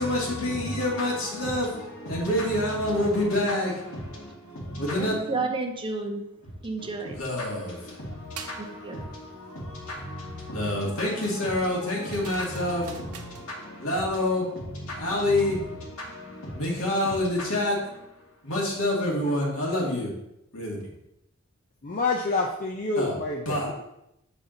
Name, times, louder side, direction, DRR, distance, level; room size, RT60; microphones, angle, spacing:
voice 1, 0.0-5.1 6.8-20.1 20.5-20.9 23.0-23.2 23.5-23.7, left 1 dB, 70° left, 2.1 m, -28 dB
voice 2, 5.0-6.2 6.6-7.2 8.6-9.0, right 3 dB, 25° right, 0.6 m, -31 dB
sound 1, 8.4-8.6 11.2-13.5, right 7 dB, 90° right, 0.7 m, -44 dB
voice 3, 21.8-23.8, left 3 dB, 40° left, 0.6 m, -28 dB
7.4 x 4.1 x 3.8 m
head